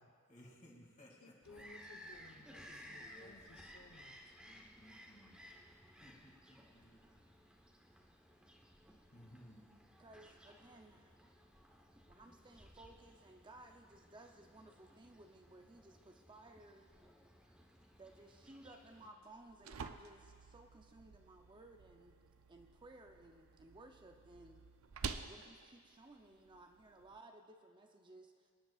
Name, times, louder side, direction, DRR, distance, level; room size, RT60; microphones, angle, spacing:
voice 1, 0.3-1.6 3.0-3.3 4.5-5.4 6.0-7.2 9.1-9.7, equal, 35° left, -2 dB, 2.4 m, -60 dB
voice 2, 1.1-4.4, left 2 dB, 75° left, 3 dB, 0.9 m, -60 dB
Bird vocalization bird call bird song, 1.4-19.1, equal, 5° right, 1.0 m, -59 dB
voice 3, 10.0-11.1 12.1-16.9 18.0-22.2 22.5-24.6 25.2-28.5, right 2 dB, 20° right, 4 dB, 0.6 m, -59 dB
sound 1, 19.2-27.2, right 5 dB, 75° right, 0.5 m, -50 dB
24.5 x 10.5 x 2.4 m, 2.2 s
head